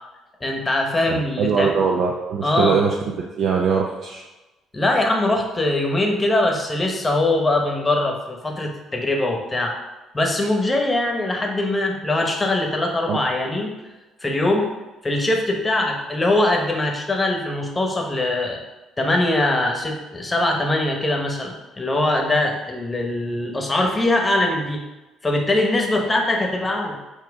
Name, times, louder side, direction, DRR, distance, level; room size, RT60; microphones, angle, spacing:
voice 1, 0.4-1.7 2.4-2.8 4.7-9.8 10.1-13.7 14.2-14.7 15.0-18.6 19.0-24.8 25.2-27.0, left 2 dB, 15° left, 1 dB, 1.0 m, -22 dB
voice 2, 1.1-4.2 13.1-13.2, right 5 dB, 60° right, 0 dB, 0.6 m, -22 dB
7.2 x 2.9 x 4.8 m, 1.1 s
cardioid pair, 125°, 0 cm